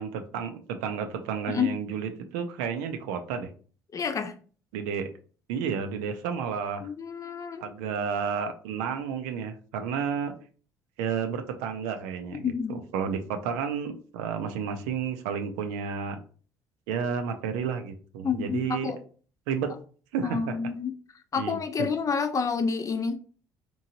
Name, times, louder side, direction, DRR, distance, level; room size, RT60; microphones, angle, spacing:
voice 1, 0.0-3.5 4.7-5.1 5.5-6.9 7.6-10.3 11.0-12.5 12.9-16.2 16.9-18.9 19.5-19.7 20.1-20.6 21.4-21.9, right 6 dB, 80° right, 0.5 m, -31 dB
voice 2, 3.9-4.3 6.8-7.7 12.4-12.8 18.2-19.0 20.2-20.9 21.3-23.1, left 6 dB, 35° left, 0.5 m, -29 dB
2.9 x 2.7 x 2.6 m
hypercardioid pair, 60°, 9 cm